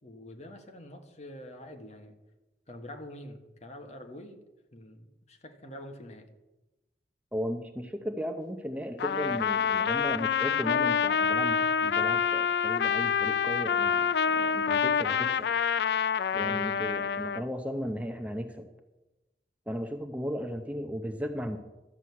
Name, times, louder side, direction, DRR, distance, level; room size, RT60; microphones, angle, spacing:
voice 1, 0.0-2.2 2.7-4.4 4.7-6.3 16.4-16.7, left 1 dB, 40° left, 4 dB, 1.4 m, -46 dB
voice 2, 7.3-15.5 16.3-18.7 19.7-21.6, equal, 10° right, 5 dB, 0.7 m, -36 dB
Trumpet, 9.0-17.4, left 7 dB, 70° left, 0.4 m, -27 dB
13.0 x 6.2 x 8.3 m, 1.0 s
head